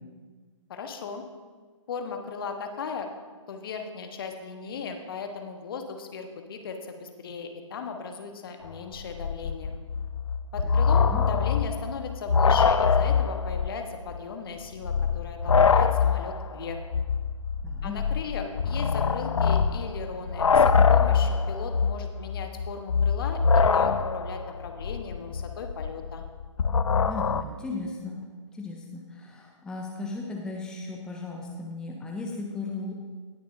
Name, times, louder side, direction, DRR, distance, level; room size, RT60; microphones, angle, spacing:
voice 1, 0.7-1.2 1.9-3.1 3.5-9.8 10.5-16.8 17.8-26.2, left 5 dB, 45° left, 5 dB, 1.2 m, -37 dB
sound 1, 8.7-8.8 9.0-13.8 14.1-14.2 14.8-27.4, left 5 dB, 75° left, 0.5 m, -24 dB
voice 2, 10.6-11.2 17.6-17.9 27.1-28.2 28.5-32.9, left 3 dB, 5° left, 0 dB, 0.6 m, -36 dB
18.5 x 6.7 x 2.6 m, 1.5 s
figure-of-eight pair, 130°, 16 cm